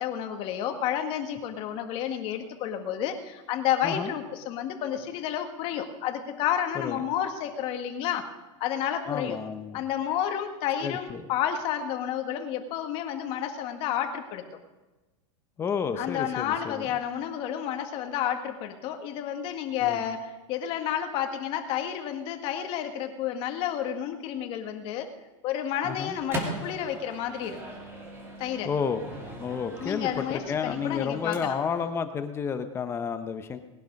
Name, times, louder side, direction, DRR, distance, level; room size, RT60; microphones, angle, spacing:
voice 1, 0.0-8.3 8.6-9.4 9.7-14.4 16.0-25.1 25.4-27.6 28.4-28.7 29.8-31.6, left 10 dB, 35° left, 6 dB, 1.7 m, -30 dB
voice 2, 3.8-4.1 6.7-7.0 9.1-9.8 10.8-11.3 15.6-16.9 19.8-20.0 25.8-26.2 28.6-33.6, left 6 dB, 15° left, 9 dB, 0.8 m, -31 dB
Microwave oven, 25.9-31.9, right 1 dB, 15° right, 2.5 m, -40 dB
20.0 x 11.0 x 5.3 m, 1.1 s
supercardioid pair, 160°, 16 cm